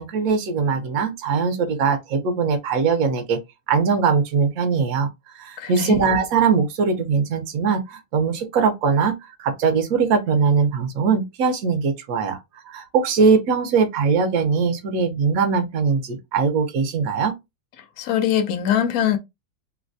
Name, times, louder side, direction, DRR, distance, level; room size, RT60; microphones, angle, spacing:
voice 1, 0.0-3.4 3.7-5.1 5.3-12.4 12.6-17.3, right 5 dB, 60° right, 1.0 m, -21 dB
voice 2, 5.6-6.0 17.8-19.2, left 10 dB, 75° left, 0.8 m, -22 dB
3.2 x 2.2 x 2.5 m
omnidirectional pair, 2.1 m